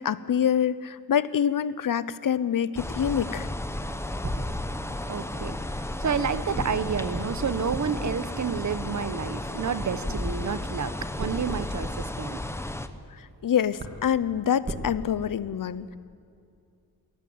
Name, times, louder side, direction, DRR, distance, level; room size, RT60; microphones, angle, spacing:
voice 1, 0.0-3.5 13.2-16.0, left 8 dB, 60° left, 16 dB, 0.8 m, -26 dB
sound 1, 2.8-12.9, left 1 dB, 5° left, 0.9 m, -33 dB
sound 2, 4.2-5.4 6.5-9.8 11.2-13.1 13.4-13.5 13.8-14.9, right 1 dB, 30° right, 2.3 m, -38 dB
voice 2, 5.1-10.9 11.2-12.4, right 6 dB, 50° right, 13 dB, 1.1 m, -30 dB
21.5 x 17.0 x 9.5 m, 2.5 s
wide cardioid pair, 165°, 36 cm